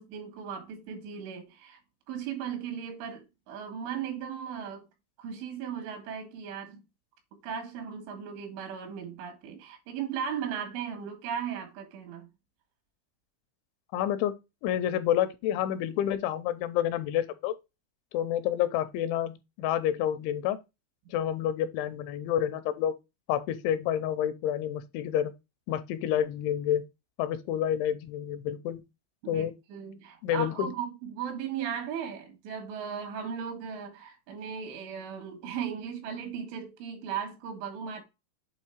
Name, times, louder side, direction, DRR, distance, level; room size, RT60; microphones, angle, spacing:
voice 1, 0.0-1.8 2.1-4.9 5.2-6.8 7.4-12.3 29.2-38.0, right 7 dB, 80° right, 4.1 m, -37 dB
voice 2, 13.9-14.3 14.6-17.5 18.1-20.6 21.1-22.9 23.3-25.3 25.7-26.9 27.2-28.8 29.3-29.5 30.2-30.7, left 10 dB, 85° left, 2.9 m, -29 dB
8.3 x 3.0 x 4.4 m
omnidirectional pair, 5.4 m